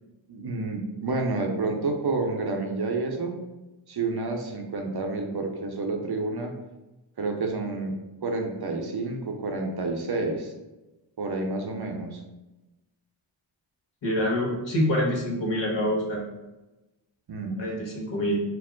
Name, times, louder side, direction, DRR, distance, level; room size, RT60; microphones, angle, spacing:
voice 1, 0.3-3.4 3.9-6.5 7.2-7.9 8.2-10.5 11.2-12.2 17.3-17.6, right 3 dB, 55° right, 3 dB, 0.7 m, -29 dB
voice 2, 14.0-16.2 17.6-18.4, equal, 65° left, -2 dB, 1.3 m, -26 dB
4.5 x 2.0 x 3.7 m, 1.1 s
wide cardioid pair, 80°, 48 cm